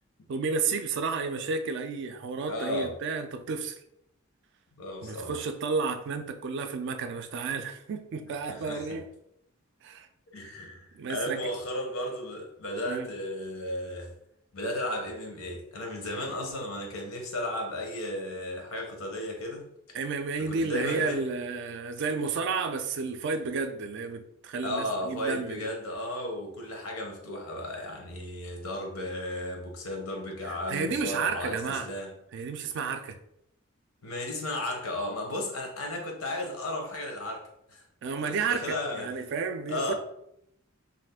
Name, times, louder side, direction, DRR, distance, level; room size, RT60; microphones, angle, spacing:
voice 1, 0.3-3.8 5.0-9.1 9.8-10.1 10.4-10.5 10.9-11.4 12.9-13.1 19.9-25.7 30.4-31.9 32.3-33.2 38.0-39.9, right 4 dB, 60° right, 7 dB, 0.3 m, -32 dB
voice 2, 2.5-3.0 4.8-5.4 8.5-9.0 10.3-14.1 14.5-19.7 20.5-21.2 24.6-32.1 34.0-37.4 37.7-37.8 38.2-39.1 39.7-39.9, left 1 dB, 85° left, 2 dB, 0.8 m, -34 dB
2.5 x 2.4 x 3.4 m, 0.77 s
head